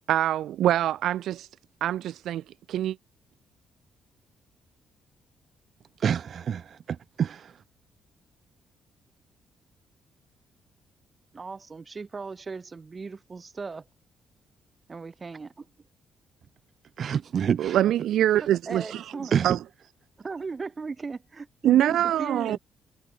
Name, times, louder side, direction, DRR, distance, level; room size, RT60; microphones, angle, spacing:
voice 1, 0.1-1.5 1.8-2.4 2.7-3.0 17.6-19.6 21.6-22.6, right 12 dB, 75° right, 1.0 m, -24 dB
voice 2, 6.0-7.5 17.0-17.8 19.3-19.6, right 8 dB, 55° right, 1.5 m, -27 dB
voice 3, 11.3-13.8 14.9-15.7 18.4-19.5 20.2-22.6, right 4 dB, 30° right, 6.5 m, -37 dB
cardioid pair, 90°, 0 cm